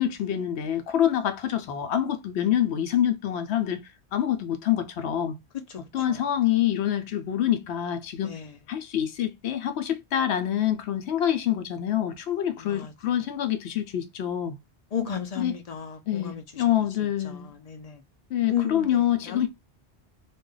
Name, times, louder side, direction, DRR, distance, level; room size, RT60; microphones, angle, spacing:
voice 1, 0.0-3.8 4.1-5.4 5.9-8.4 8.7-14.6 15.4-15.6 16.1-17.5 18.3-19.5, left 10 dB, 75° left, 0.8 m, -26 dB
voice 2, 12.6-12.9 14.9-16.4 17.3-17.4 17.7-18.0 18.5-19.5, left 8 dB, 45° left, 0.6 m, -33 dB
2.4 x 2.2 x 3.7 m
omnidirectional pair, 1.1 m